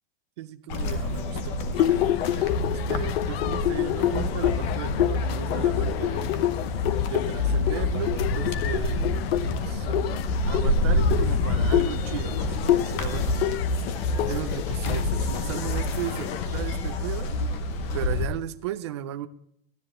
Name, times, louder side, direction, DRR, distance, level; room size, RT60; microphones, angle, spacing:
voice 1, 0.4-6.3 7.1-9.2 9.4-10.1 10.5-13.6 14.3-17.3 17.9-19.3, right 12 dB, 30° right, 11 dB, 0.4 m, -36 dB
sound 1, 0.7-18.3, left 2 dB, 30° left, 0.8 m, -28 dB
sound 2, 1.7-16.5, left 13 dB, 75° left, 0.5 m, -28 dB
13.0 x 9.9 x 3.0 m, 0.74 s
supercardioid pair, 180°, 30 cm